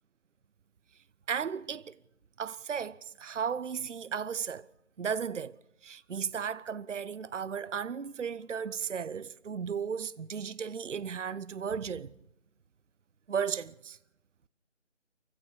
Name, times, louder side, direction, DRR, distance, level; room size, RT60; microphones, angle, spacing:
voice 1, 1.3-1.9 2.4-4.7 5.0-5.6 5.8-12.1 13.3-14.0, right 7 dB, 70° right, 0.7 m, -35 dB
26.5 x 15.5 x 7.0 m
figure-of-eight pair, 160°, 38 cm